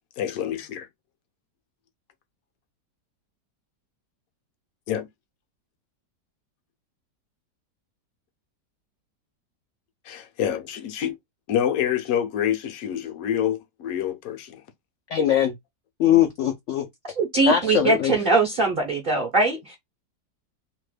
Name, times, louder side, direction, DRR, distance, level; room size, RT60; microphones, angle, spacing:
voice 1, 0.2-0.9 4.9-5.1 10.0-11.2 11.5-14.6, left 10 dB, 65° left, 1.0 m, -27 dB
voice 2, 15.1-15.5 16.0-16.8 17.5-18.1, left 10 dB, 80° left, 0.6 m, -21 dB
voice 3, 17.2-19.8, right 3 dB, 50° right, 0.6 m, -22 dB
2.9 x 2.1 x 3.1 m
omnidirectional pair, 1.8 m